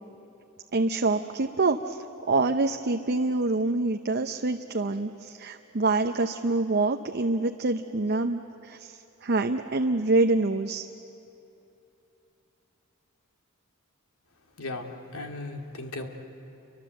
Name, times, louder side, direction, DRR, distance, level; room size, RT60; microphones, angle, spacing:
voice 1, 0.7-2.0 2.3-10.8, right 3 dB, 50° right, 5 dB, 0.7 m, -26 dB
voice 2, 14.4-16.1, left 2 dB, 85° left, 3 dB, 2.5 m, -37 dB
29.5 x 24.0 x 7.8 m, 3.0 s
head